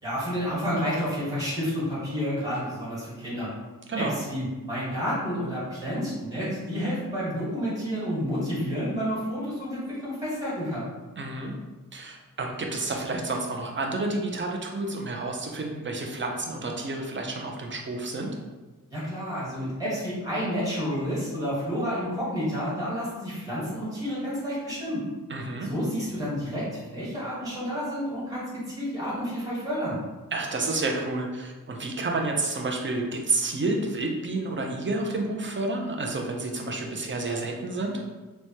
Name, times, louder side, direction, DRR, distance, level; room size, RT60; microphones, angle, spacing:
voice 1, 0.0-3.5 4.0-10.9 18.9-25.0 25.6-30.0, equal, 10° right, -8 dB, 1.3 m, -30 dB
voice 2, 11.2-11.5 11.9-18.3 25.3-25.7 30.3-38.0, right 2 dB, 35° right, 1 dB, 0.5 m, -30 dB
3.0 x 2.2 x 2.8 m, 1.2 s
wide cardioid pair, 80°, 35 cm